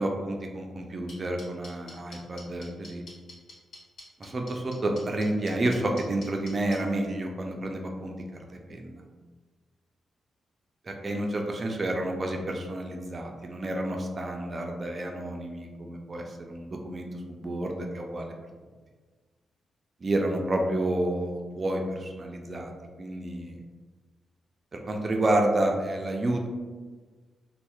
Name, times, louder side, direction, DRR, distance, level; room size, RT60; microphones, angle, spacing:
voice 1, 0.0-3.0 4.2-9.0 10.9-18.3 20.0-22.7 23.0-23.6 24.7-26.5, right 1 dB, 30° right, 2 dB, 0.3 m, -30 dB
sound 1, 1.1-6.8, left 2 dB, 75° left, 1.1 m, -45 dB
2.7 x 2.0 x 2.3 m, 1.4 s
wide cardioid pair, 145°, 0 cm